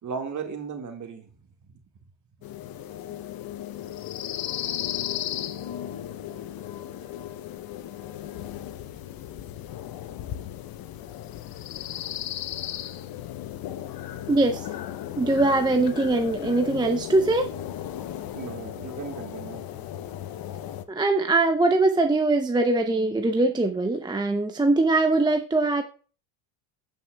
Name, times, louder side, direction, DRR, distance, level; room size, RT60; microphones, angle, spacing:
voice 1, 0.0-1.3 18.3-19.6, right 5 dB, 35° right, 4 dB, 1.8 m, -35 dB
sound 1, 2.4-20.8, left 11 dB, 45° left, 0.7 m, -35 dB
voice 2, 14.3-14.7 15.2-17.5 20.9-25.8, right 2 dB, 10° right, 6 dB, 0.6 m, -22 dB
16.0 x 5.5 x 2.3 m, 0.38 s
supercardioid pair, 85°, 49 cm